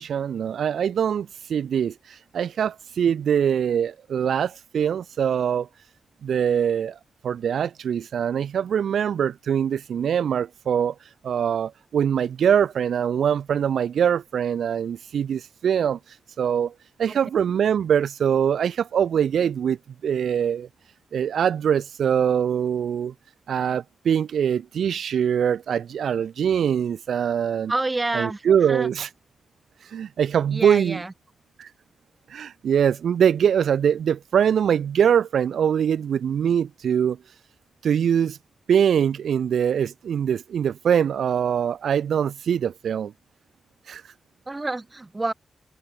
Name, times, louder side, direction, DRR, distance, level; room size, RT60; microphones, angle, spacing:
voice 1, 0.0-5.7 6.2-7.0 7.2-10.9 11.2-16.7 17.0-19.8 20.0-20.7 21.1-23.1 23.5-27.7 28.1-29.1 29.8-31.0 31.6-31.7 32.3-37.2 37.8-38.4 38.7-43.1 43.9-44.0, right 8 dB, 85° right, 0.7 m, -23 dB
voice 2, 27.7-28.9 30.5-31.1 44.5-45.3, right 2 dB, 25° right, 3.4 m, -28 dB
cardioid pair, 70°, 0 cm